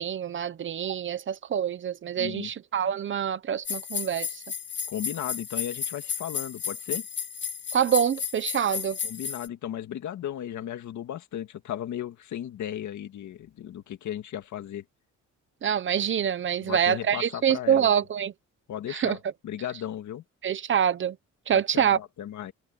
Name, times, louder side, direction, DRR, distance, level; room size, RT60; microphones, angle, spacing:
voice 1, 0.0-4.4 7.7-9.0 15.6-18.3 18.9-19.2 20.4-21.2 21.5-22.0, right 8 dB, 40° right, 0.8 m, -26 dB
voice 2, 2.2-2.5 4.9-7.1 9.0-14.8 16.6-17.9 18.7-20.2 21.5-22.5, left 10 dB, 70° left, 1.9 m, -35 dB
sound 1, 3.6-9.5, left 7 dB, 35° left, 2.5 m, -33 dB
wide cardioid pair, 180°, 31 cm